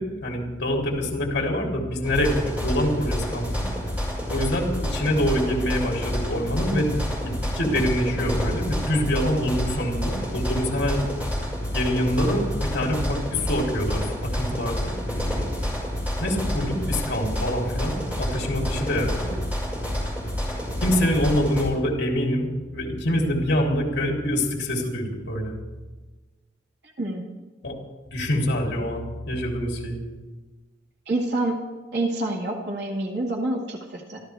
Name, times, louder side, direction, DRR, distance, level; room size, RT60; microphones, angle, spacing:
voice 1, 0.0-3.7 4.3-11.0 11.7-15.0 16.2-19.4 20.8-25.6 27.6-27.7 28.1-30.0, equal, 65° left, 0 dB, 3.3 m, -25 dB
sound 1, 2.0-21.6, equal, 10° right, 5.2 m, -29 dB
voice 2, 31.1-31.6 31.9-34.2, right 2 dB, 60° right, 0 dB, 2.1 m, -27 dB
25.5 x 14.0 x 3.5 m, 1.3 s
head